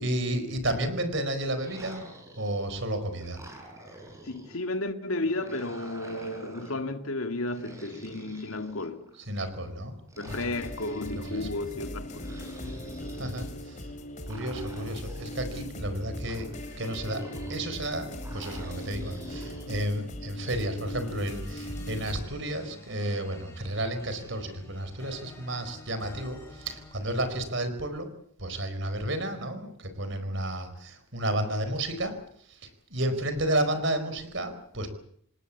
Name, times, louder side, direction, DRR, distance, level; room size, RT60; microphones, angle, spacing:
voice 1, 0.0-2.1 2.4-3.4 9.3-9.9 10.3-10.4 11.3-11.8 13.2-13.9 14.2-16.5 16.8-28.1 28.4-32.2 32.5-34.9, right 1 dB, 55° right, 4.6 m, -32 dB
sound 1, 1.5-2.7 3.2-4.6 5.2-6.8 7.5-9.2 10.1-11.4 12.1-13.5 14.2-15.6 16.2-17.8 18.2-19.7, right 1 dB, 15° right, 5.3 m, -47 dB
voice 2, 4.2-9.1 10.2-12.4 12.7-12.9, left 2 dB, 75° left, 2.1 m, -33 dB
sound 2, 10.3-22.2, equal, 35° left, 3.3 m, -39 dB
sound 3, 21.0-27.7, left 1 dB, 10° left, 4.7 m, -49 dB
27.5 x 18.0 x 8.4 m
head